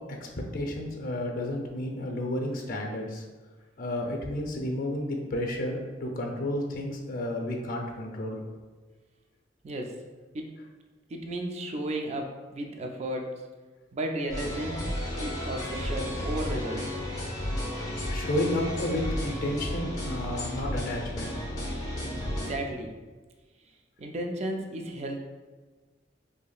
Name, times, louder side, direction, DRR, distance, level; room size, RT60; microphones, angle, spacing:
voice 1, 0.5-3.2 3.8-8.4 18.1-21.4, left 1 dB, 50° left, 1 dB, 0.6 m, -31 dB
voice 2, 9.6-10.0 10.3-10.5 11.1-13.4 13.9-14.8 15.2-16.9 22.3-22.9 24.0-25.2, right 1 dB, 35° right, 3 dB, 0.4 m, -34 dB
sound 1, 14.3-22.5, left 1 dB, 20° left, 0.9 m, -33 dB
4.8 x 2.7 x 2.3 m, 1.3 s
head